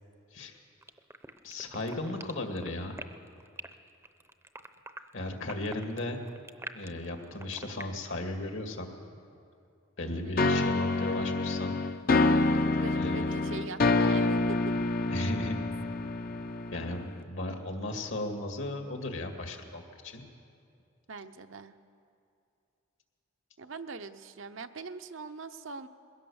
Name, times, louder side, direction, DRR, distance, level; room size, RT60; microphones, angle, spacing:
sound 1, 0.8-7.8, right 2 dB, 15° right, 0.7 m, -44 dB
voice 1, 1.4-3.0 5.1-6.2 6.7-8.9 10.0-11.8 12.9-13.3 15.1-15.7 16.7-20.2, left 2 dB, 70° left, 4 dB, 2.1 m, -36 dB
voice 2, 10.0-10.4 12.5-14.4 14.7-14.8 21.1-21.7 23.6-25.9, right 4 dB, 70° right, 9 dB, 0.8 m, -42 dB
sound 2, 10.4-17.2, left 3 dB, 45° left, 0.7 m, -27 dB
21.5 x 17.0 x 7.1 m, 2.6 s
head